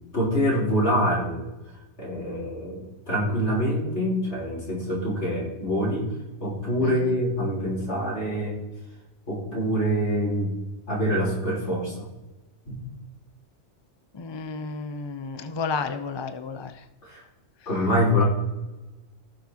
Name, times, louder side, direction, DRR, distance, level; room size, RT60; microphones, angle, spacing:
voice 1, 0.1-1.4 2.0-6.1 6.4-8.6 9.3-10.5 10.9-12.1 12.7-12.8 17.0-17.2 17.7-18.2, equal, 65° left, -5 dB, 4.0 m, -25 dB
voice 2, 6.8-7.1 14.1-16.7, left 4 dB, 40° left, 9 dB, 0.4 m, -32 dB
17.5 x 6.4 x 2.8 m, 1.0 s
omnidirectional pair, 1.2 m